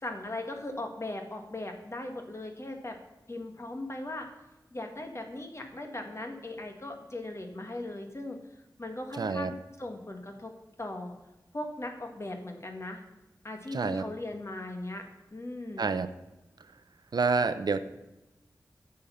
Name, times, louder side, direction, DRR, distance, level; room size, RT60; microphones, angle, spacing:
voice 1, 0.0-3.0 3.3-4.3 4.7-8.4 8.8-10.5 10.8-11.2 11.5-13.0 13.4-15.0 15.3-15.9, left 2 dB, 40° left, 4 dB, 1.7 m, -38 dB
voice 2, 9.2-9.5 13.7-14.0 15.8-16.1 17.1-17.8, right 4 dB, 70° right, 12 dB, 0.6 m, -27 dB
10.5 x 6.7 x 5.7 m, 0.99 s
cardioid pair, 55°, 7 cm